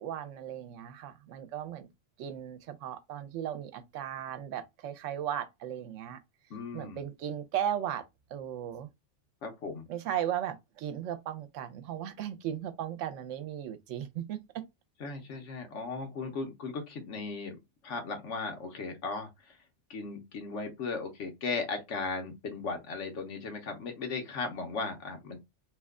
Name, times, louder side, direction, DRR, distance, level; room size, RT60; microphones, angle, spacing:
voice 1, 0.0-1.9 2.2-6.2 6.7-8.0 8.3-8.9 9.9-14.4, right 10 dB, 90° right, 1.0 m, -36 dB
voice 2, 6.5-7.0 9.4-9.8 15.0-17.6 17.8-19.3 19.9-25.4, left 4 dB, 80° left, 1.2 m, -36 dB
3.1 x 2.2 x 3.5 m
omnidirectional pair, 1.2 m